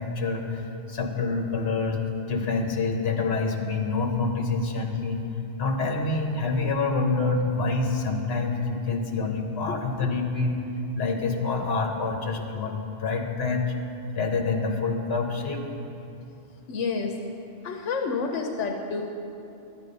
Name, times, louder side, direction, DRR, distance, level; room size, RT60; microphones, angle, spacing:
voice 1, 0.0-5.2 5.6-10.6 10.9-13.6 14.1-15.6, left 3 dB, 60° left, 3 dB, 1.3 m, -27 dB
voice 2, 16.7-17.2 17.6-19.0, left 4 dB, 85° left, 3 dB, 1.1 m, -29 dB
12.5 x 9.1 x 5.3 m, 2.8 s
omnidirectional pair, 1.2 m